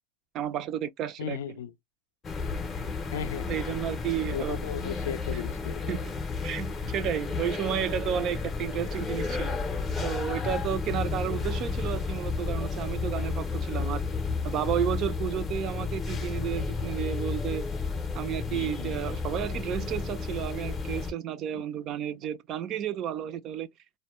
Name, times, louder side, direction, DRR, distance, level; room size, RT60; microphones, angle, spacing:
voice 1, 0.3-1.6 3.5-4.6 5.3-5.4 5.9-6.1 6.4-9.6 10.0-14.0 14.4-17.7 18.1-23.7, right 10 dB, 35° right, 0.4 m, -32 dB
voice 2, 1.2-1.7 3.1-3.6 4.3-5.9 18.5-19.0 21.5-21.6, left 8 dB, 90° left, 0.4 m, -36 dB
sound 1, 2.2-21.1, left 4 dB, 20° left, 0.6 m, -32 dB
2.1 x 2.1 x 2.9 m
supercardioid pair, 145°, 0 cm